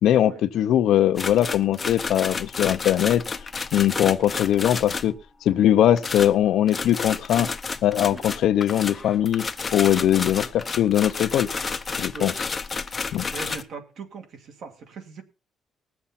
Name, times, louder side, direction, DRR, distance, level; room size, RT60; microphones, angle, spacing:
voice 1, 0.0-3.2 3.7-5.1 5.4-7.5 7.8-9.5 9.7-11.5 12.0-12.3 13.1-13.3, left 11 dB, 70° left, 0.7 m, -21 dB
sound 1, 1.2-5.2 6.0-13.6, left 4 dB, 20° left, 0.6 m, -31 dB
voice 2, 13.2-15.2, right 4 dB, 55° right, 2.1 m, -39 dB
20.0 x 7.1 x 4.2 m
cardioid pair, 175°, 0 cm